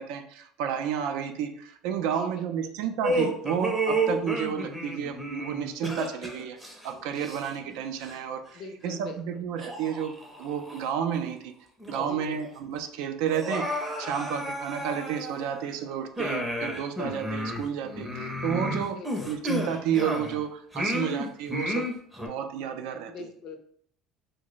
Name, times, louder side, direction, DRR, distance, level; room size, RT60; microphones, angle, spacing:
voice 1, 0.0-10.1 10.4-11.5 11.9-19.0 19.3-21.9 22.3-23.3, right 8 dB, 75° right, 6 dB, 0.4 m, -31 dB
voice 2, 2.1-2.7 8.5-9.2 12.0-12.4 18.9-19.3 23.0-23.6, left 4 dB, 55° left, 5 dB, 0.5 m, -42 dB
sound 1, 3.0-7.7 8.0-8.2 8.9-9.0 9.6-10.9 11.3-11.4 11.8-12.4 12.6-12.7 13.2-15.7 16.2-20.4 20.7-22.3, right 1 dB, 5° right, 0.6 m, -32 dB
2.9 x 2.0 x 3.9 m, 0.62 s
cardioid pair, 140°, 0 cm